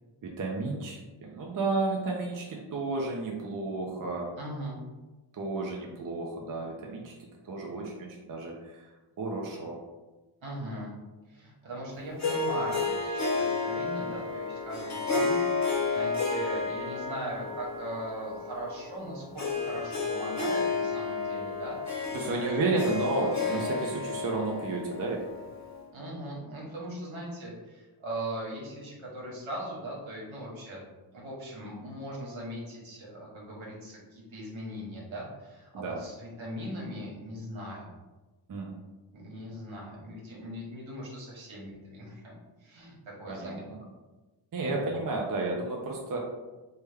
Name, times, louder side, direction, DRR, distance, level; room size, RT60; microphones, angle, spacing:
voice 1, 0.2-4.3 5.3-8.9 9.2-9.8 22.1-25.2 35.7-36.0 38.5-38.7 43.3-43.6 44.5-46.2, right 3 dB, 45° right, -1 dB, 0.5 m, -32 dB
voice 2, 4.4-4.8 10.4-10.9 11.3-22.9 23.2-23.8 25.9-30.8 31.1-37.9 39.1-42.3 42.6-43.7 44.6-45.0, right 1 dB, 70° right, -4 dB, 1.2 m, -40 dB
Harp, 12.2-25.8, left 4 dB, 35° left, 0.6 m, -31 dB
3.3 x 2.2 x 3.3 m, 1.2 s
wide cardioid pair, 110°, 49 cm